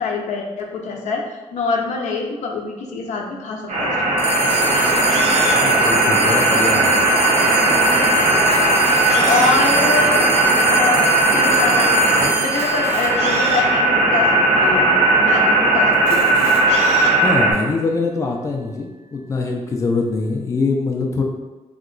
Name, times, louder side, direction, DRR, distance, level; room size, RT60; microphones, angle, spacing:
voice 1, 0.0-4.1 9.3-10.4 10.7-12.0 12.4-16.3, left 4 dB, 85° left, 1 dB, 0.5 m, -25 dB
sound 1, 3.7-17.5, right 2 dB, 85° right, 1.2 m, -17 dB
sound 2, 4.2-14.8, right 3 dB, 50° right, 0.5 m, -26 dB
Camera, 4.3-5.7 6.4-6.5 6.7-6.8 7.4-7.5 8.3-9.7 10.3-10.4 12.4-13.6 14.4-14.5 14.7-14.8 15.9-17.1, right 1 dB, 70° right, 0.9 m, -32 dB
voice 2, 5.5-7.0 17.2-21.2, left 3 dB, 25° left, 1 dB, 0.4 m, -23 dB
2.9 x 2.2 x 3.8 m, 1.2 s
wide cardioid pair, 130°, 12 cm